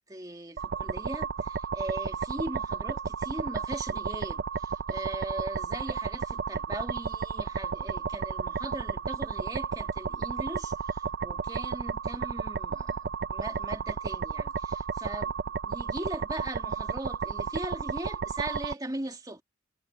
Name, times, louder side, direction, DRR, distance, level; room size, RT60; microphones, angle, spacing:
voice 1, 0.1-15.3 15.6-19.4, right 1 dB, 20° right, 1.9 m, -39 dB
sound 1, 0.6-18.7, right 5 dB, 45° right, 0.5 m, -33 dB
head